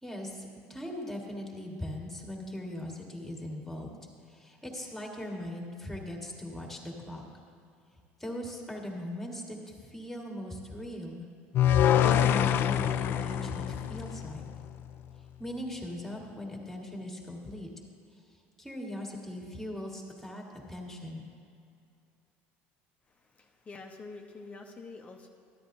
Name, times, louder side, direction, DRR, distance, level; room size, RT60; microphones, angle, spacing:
voice 1, 0.0-4.0 4.3-7.2 8.2-9.6 9.9-11.2 12.0-14.4 15.4-17.7 18.6-21.2, left 1 dB, 5° left, 0 dB, 1.6 m, -39 dB
sound 1, 11.5-14.7, left 10 dB, 50° left, 0.3 m, -25 dB
voice 2, 23.1-25.3, left 3 dB, 25° left, 2 dB, 0.7 m, -47 dB
13.5 x 10.0 x 2.6 m, 2.5 s
supercardioid pair, 110°, 5 cm